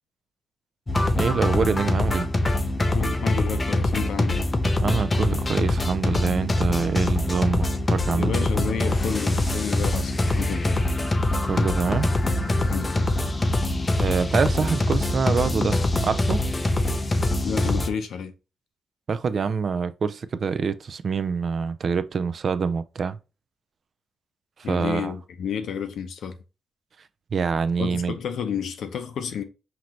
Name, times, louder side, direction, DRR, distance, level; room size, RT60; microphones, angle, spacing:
sound 1, 0.9-17.9, left 1 dB, 20° left, 0.5 m, -24 dB
voice 1, 1.1-2.3 4.8-8.3 11.4-12.1 14.0-16.5 19.1-23.2 24.6-25.1 27.3-28.1, right 5 dB, 40° right, 0.3 m, -25 dB
voice 2, 2.9-4.5 8.1-10.8 12.7-13.2 17.4-18.3 24.6-26.4 27.8-29.4, left 7 dB, 70° left, 0.7 m, -30 dB
5.8 x 2.6 x 3.0 m
wide cardioid pair, 175°, 0 cm